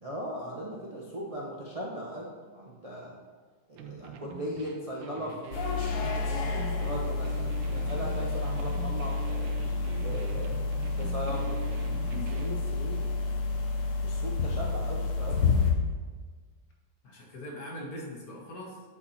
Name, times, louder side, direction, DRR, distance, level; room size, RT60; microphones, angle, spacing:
voice 1, 0.0-3.2 3.7-5.4 5.9-9.5 10.0-10.5 10.9-11.6 12.1-13.1 14.0-15.5, equal, 40° right, -4 dB, 0.5 m, -38 dB
sound 1, 3.8-12.6, right 5 dB, 85° right, 1.4 m, -43 dB
sound 2, 5.5-15.7, left 4 dB, 70° left, 1.5 m, -30 dB
voice 2, 17.0-18.8, left 1 dB, 55° left, -2 dB, 1.6 m, -41 dB
9.5 x 4.2 x 4.2 m, 1.5 s
omnidirectional pair, 2.0 m